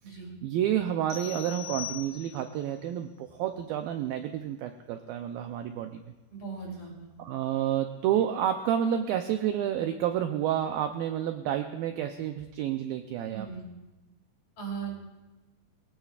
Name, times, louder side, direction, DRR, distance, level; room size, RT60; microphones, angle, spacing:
voice 1, 0.1-6.0 7.2-13.5, right 10 dB, 85° right, 6 dB, 2.1 m, -30 dB
sound 1, 1.1-2.6, left 11 dB, 65° left, 0.6 m, -40 dB
voice 2, 6.3-7.1 13.3-13.7 14.6-14.9, right 6 dB, 40° left, -3 dB, 4.1 m, -38 dB
22.0 x 16.5 x 2.4 m, 1.1 s
omnidirectional pair, 4.9 m